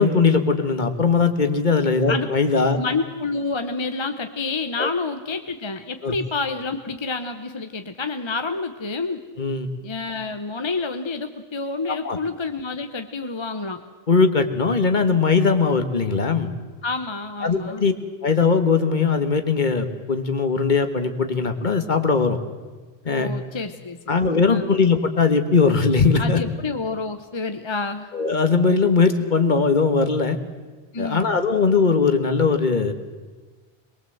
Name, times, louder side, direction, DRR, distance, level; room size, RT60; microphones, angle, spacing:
voice 1, 0.0-2.8 4.8-4.9 6.0-6.1 9.4-9.7 12.0-12.2 14.1-16.5 17.4-17.9 18.2-22.4 23.0-23.3 24.1-26.4 28.1-30.4 31.0-32.9, left 4 dB, 45° left, 8 dB, 1.7 m, -20 dB
voice 2, 2.8-9.2 9.8-13.8 16.8-17.8 23.1-24.2 24.5-24.7 26.2-28.1 30.9-31.3, left 3 dB, 30° left, 7 dB, 0.9 m, -28 dB
23.0 x 21.5 x 7.8 m, 1.3 s
omnidirectional pair, 1.1 m